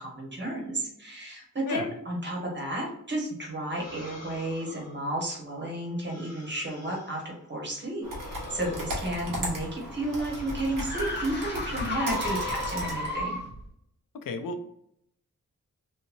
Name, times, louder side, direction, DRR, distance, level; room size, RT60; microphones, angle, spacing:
voice 1, 0.0-13.4, right 1 dB, 35° right, -2 dB, 1.2 m, -32 dB
sound 1, 3.7-7.4 8.0-11.3 11.9-13.4, left 2 dB, 50° left, 1.0 m, -45 dB
Computer keyboard, 8.0-13.1, equal, 90° right, 1.1 m, -37 dB
sound 2, 9.6-13.7, left 1 dB, 35° left, 1.2 m, -34 dB
voice 2, 14.1-14.7, left 3 dB, 90° left, 7 dB, 0.5 m, -33 dB
3.0 x 2.6 x 2.5 m, 0.73 s
wide cardioid pair, 105°, 32 cm